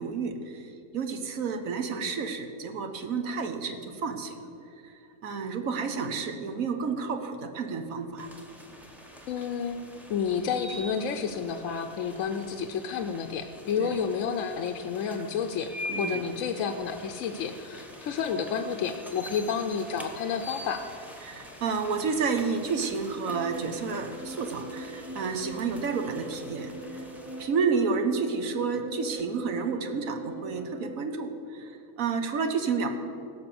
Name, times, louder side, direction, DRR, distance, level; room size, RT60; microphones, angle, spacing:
voice 1, 0.0-4.4 4.8-4.9 5.2-8.3 13.8-13.9 15.9-16.2 21.2-26.7 27.4-32.9, right 5 dB, 70° right, 6 dB, 1.3 m, -30 dB
sound 1, 8.2-27.4, equal, ahead, 0.9 m, -45 dB
voice 2, 9.3-9.8 10.1-15.7 16.0-20.8, left 6 dB, 70° left, 6 dB, 1.0 m, -30 dB
sound 2, 23.2-31.0, equal, 20° right, 0.3 m, -42 dB
16.0 x 6.1 x 6.9 m, 2.6 s
omnidirectional pair, 1.5 m